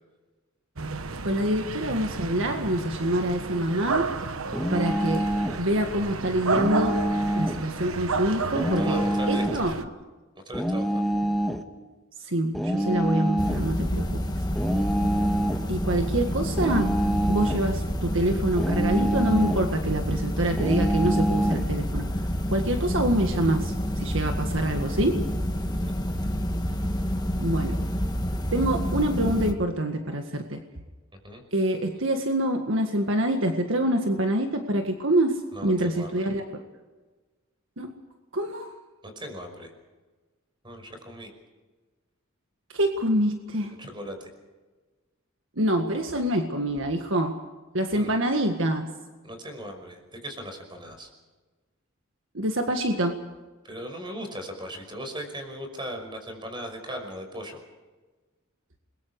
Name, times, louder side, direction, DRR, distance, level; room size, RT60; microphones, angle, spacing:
sound 1, 0.8-9.8, right 4 dB, 80° right, 1.2 m, -32 dB
voice 1, 1.2-4.1 4.7-5.3 5.6-7.0 7.4-9.7 12.2-14.2 15.7-16.9 17.3-22.1 22.5-25.2 27.4-27.8 28.5-30.6 31.5-36.6 37.8-38.0 38.3-38.7 42.7-43.7 45.6-47.4 47.7-48.9 52.3-53.2, right 1 dB, 65° right, 4 dB, 1.8 m, -26 dB
sound 2, 4.5-5.6 6.5-7.7 8.5-9.7 10.5-11.6 12.5-13.7 14.6-15.7 16.6-17.7 18.6-19.7 20.6-21.7, equal, ahead, 1.4 m, -26 dB
voice 2, 8.5-9.6 10.5-11.0 25.8-25.9 27.4-27.6 31.2-31.4 35.5-36.1 39.0-39.7 40.6-41.3 43.8-44.3 47.9-48.2 49.2-51.1 53.6-57.6, equal, 25° right, 5 dB, 5.5 m, -38 dB
sound 3, 13.4-29.5, equal, 20° left, 1.5 m, -28 dB
29.0 x 22.5 x 4.9 m, 1.3 s
head